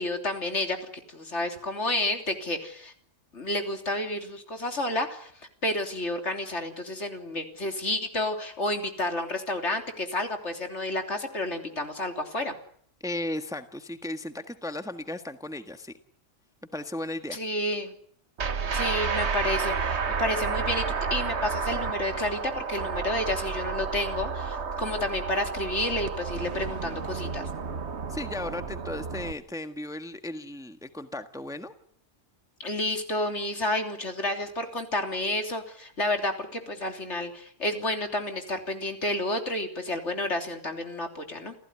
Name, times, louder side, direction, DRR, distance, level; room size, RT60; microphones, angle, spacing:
voice 1, 0.0-2.9 3.3-5.3 5.6-12.5 17.3-17.9 18.7-20.8 21.1-27.5 32.6-41.5, left 1 dB, 65° left, 5 dB, 3.5 m, -30 dB
voice 2, 13.0-15.9 16.7-17.4 28.1-31.7, left 1 dB, 5° right, 8 dB, 1.4 m, -35 dB
sound 1, 18.4-29.3, right 5 dB, 60° right, 1.7 m, -31 dB
29.0 x 15.5 x 9.8 m, 0.63 s
omnidirectional pair, 1.3 m